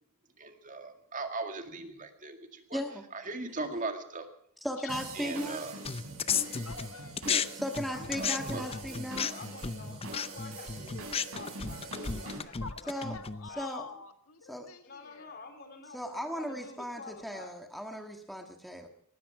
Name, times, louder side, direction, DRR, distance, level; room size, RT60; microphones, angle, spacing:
voice 1, 0.4-2.8 3.1-4.3 5.1-5.7 7.2-7.4 8.2-8.6, right 3 dB, 35° right, 6 dB, 2.0 m, -38 dB
voice 2, 2.7-3.0 4.6-5.6 7.6-9.3 12.9-13.1 13.6-13.8 14.5-14.7 15.9-18.9, equal, ahead, 4 dB, 1.5 m, -36 dB
voice 3, 4.8-5.5 6.6-7.2 12.6-15.4, left 5 dB, 80° left, 7 dB, 1.7 m, -47 dB
sound 1, 4.9-12.4, right 2 dB, 75° right, 6.4 m, -43 dB
sound 2, 5.8-7.5 7.7-13.5, left 7 dB, 25° left, 0.6 m, -34 dB
voice 4, 7.9-13.2 13.5-13.7 14.8-17.5, left 3 dB, 45° left, 6 dB, 3.6 m, -48 dB
19.5 x 15.0 x 4.9 m, 0.69 s
head